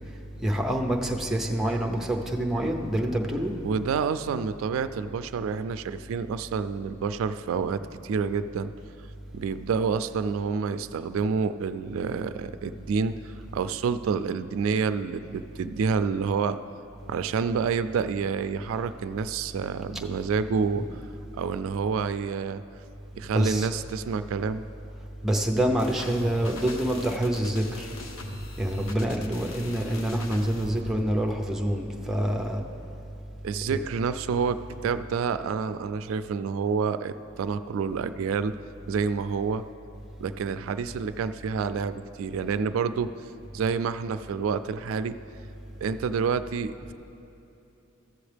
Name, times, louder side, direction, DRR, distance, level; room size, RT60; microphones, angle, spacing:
voice 1, 0.4-3.5 20.7-20.9 23.3-23.7 25.2-27.9 28.6-32.6 33.7-33.8, right 1 dB, ahead, 1 dB, 0.6 m, -26 dB
voice 2, 3.6-8.7 9.3-16.6 17.1-21.0 21.3-22.6 23.1-24.6 33.4-38.6 38.9-39.6 40.2-43.1 43.5-45.2 45.8-46.9, right 5 dB, 80° right, 12 dB, 0.3 m, -28 dB
sound 1, 25.8-31.1, left 1 dB, 75° left, 0.8 m, -40 dB
14.5 x 7.1 x 3.3 m, 2.9 s
head